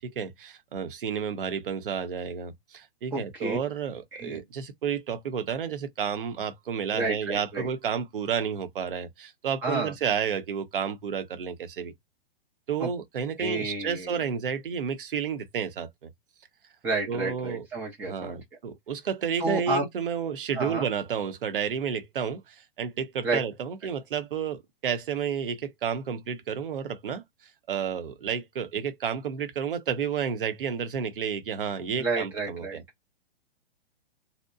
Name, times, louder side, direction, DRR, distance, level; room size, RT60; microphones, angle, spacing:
voice 1, 0.0-11.9 12.7-16.1 17.1-17.6 18.0-27.2 27.7-32.8, right 7 dB, 60° right, 0.7 m, -31 dB
voice 2, 3.1-3.6 4.1-4.4 6.9-7.7 9.6-9.9 12.8-12.9 13.4-14.3 16.8-18.4 19.4-19.9 20.5-20.9 23.2-23.4 32.0-32.8, right 3 dB, 5° right, 0.3 m, -30 dB
2.7 x 2.1 x 2.3 m
figure-of-eight pair, 115°, 31 cm